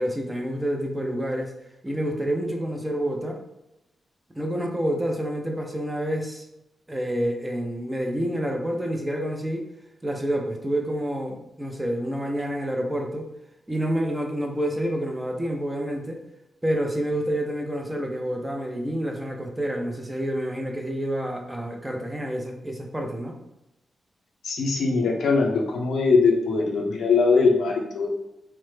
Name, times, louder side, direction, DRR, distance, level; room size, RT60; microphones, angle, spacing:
voice 1, 0.0-1.5 1.8-3.4 4.4-6.4 6.9-9.7 10.0-13.3 13.7-16.2 16.6-23.4, equal, 15° right, 2 dB, 0.5 m, -28 dB
voice 2, 24.4-28.1, left 4 dB, 85° left, 0 dB, 0.5 m, -21 dB
3.1 x 2.0 x 3.2 m, 0.89 s
cardioid pair, 80°, 0 cm